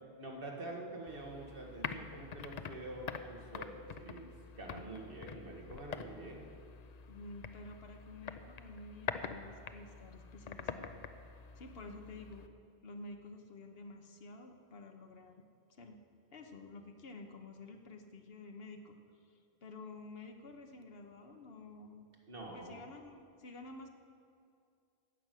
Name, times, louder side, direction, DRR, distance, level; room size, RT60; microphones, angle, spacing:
voice 1, 0.2-4.3 4.6-6.5 22.3-22.9, right 2 dB, 60° right, 0 dB, 2.0 m, -46 dB
sound 1, 1.1-12.5, left 6 dB, 50° left, 0.6 m, -46 dB
voice 2, 7.0-10.9 11.6-12.5 12.8-15.4 15.8-16.0 16.3-19.0 19.6-22.1 22.5-23.9, left 2 dB, 70° left, 5 dB, 1.2 m, -50 dB
15.0 x 6.0 x 9.1 m, 2.3 s
omnidirectional pair, 1.0 m